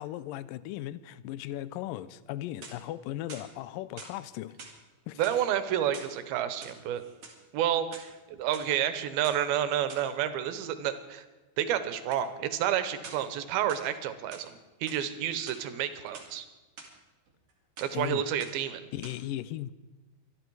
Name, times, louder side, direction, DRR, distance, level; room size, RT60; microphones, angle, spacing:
voice 1, 0.0-4.6 5.1-5.2 17.9-18.2 18.9-19.7, left 14 dB, 80° left, 2.1 m, -37 dB
sound 1, 2.4-3.0 3.3-4.2 4.6-4.8 5.2-6.2 6.5-7.4 7.8-8.7 9.2-9.4 9.9-10.1 12.1-12.3 13.0-13.3 13.7-14.5 14.9-15.0 15.3-16.3 16.8-16.9 17.3-17.5 17.8-18.0 18.4-18.7 19.0-19.1, right 4 dB, 45° right, 2.9 m, -47 dB
voice 2, 5.2-7.0 7.5-11.3 11.6-16.5 17.8-18.9, right 10 dB, 90° right, 2.9 m, -30 dB
24.5 x 11.5 x 4.7 m
omnidirectional pair, 4.2 m